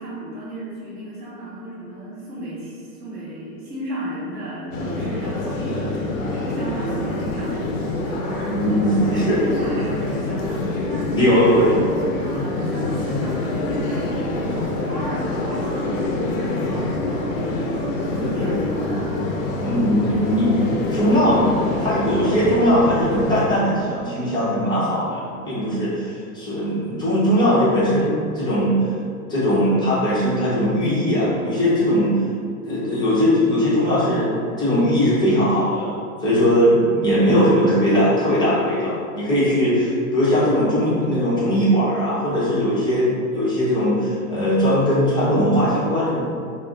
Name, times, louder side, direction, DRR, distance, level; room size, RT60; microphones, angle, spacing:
voice 1, 0.0-8.5 9.0-11.1 11.5-11.7 12.2-19.3, right 1 dB, 20° right, -9 dB, 0.9 m, -34 dB
sound 1, 4.7-23.5, left 2 dB, 60° left, 0.7 m, -26 dB
voice 2, 8.5-9.4 11.1-11.8 18.4-18.5 19.6-21.5 21.8-28.8 29.3-32.2 32.6-35.9 36.2-46.2, equal, 10° left, -9 dB, 0.7 m, -19 dB
2.4 x 2.1 x 3.7 m, 2.2 s
hypercardioid pair, 125°, 45 cm